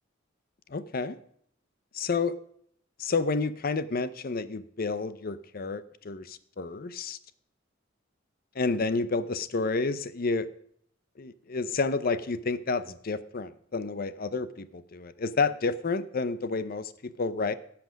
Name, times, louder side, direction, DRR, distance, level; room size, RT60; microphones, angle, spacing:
voice 1, 0.7-1.2 1.9-2.4 3.0-7.2 8.6-10.5 11.2-17.5, left 4 dB, 50° left, 14 dB, 0.6 m, -30 dB
15.5 x 5.9 x 6.3 m, 0.66 s
head